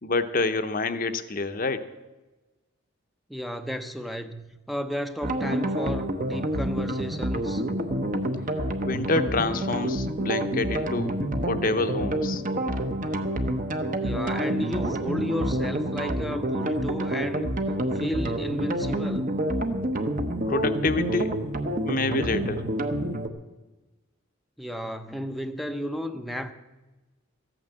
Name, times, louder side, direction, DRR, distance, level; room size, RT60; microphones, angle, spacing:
voice 1, 0.0-1.9 8.8-11.2 11.4-12.4 20.5-21.4 21.8-22.7, left 3 dB, 40° left, 10 dB, 0.8 m, -27 dB
voice 2, 3.3-4.4 4.7-7.6 14.0-17.5 17.9-19.4 24.6-26.5, equal, ahead, 9 dB, 0.6 m, -32 dB
sound 1, 5.2-23.3, right 1 dB, 40° right, 1.0 m, -28 dB
14.5 x 9.0 x 7.9 m, 1.1 s
head